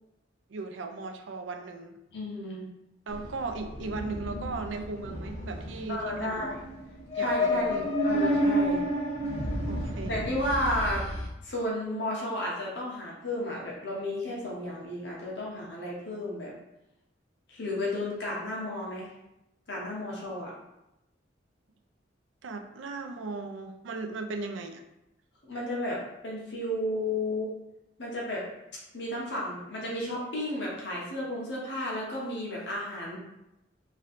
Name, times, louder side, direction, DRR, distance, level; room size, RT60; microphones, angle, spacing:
voice 1, 0.5-2.0 3.1-6.6 7.2-7.9 9.7-10.2 22.4-24.8, right 3 dB, 90° right, 6 dB, 0.5 m, -37 dB
voice 2, 2.1-2.7 5.9-6.6 7.1-8.8 10.1-11.0 11.4-16.5 17.5-19.1 19.7-20.5 25.5-27.5 28.0-28.4 28.9-33.2, left 1 dB, 65° left, -4 dB, 1.0 m, -33 dB
sound 1, 3.1-11.3, equal, 35° left, 0.8 m, -30 dB
3.1 x 2.6 x 4.1 m, 0.90 s
head